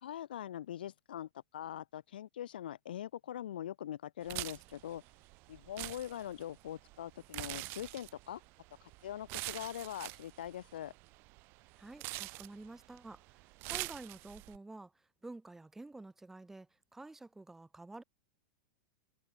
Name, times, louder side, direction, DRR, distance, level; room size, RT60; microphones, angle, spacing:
voice 1, 0.0-5.0 5.5-8.4 9.0-10.9, left 11 dB, 85° left, 2.0 m, -42 dB
sound 1, 4.2-14.6, right 24 dB, 50° right, 4.2 m, -45 dB
voice 2, 11.8-13.4 13.7-14.9 15.2-18.0, right 2 dB, 5° right, 4.0 m, -50 dB
hypercardioid pair, 125°, 5 cm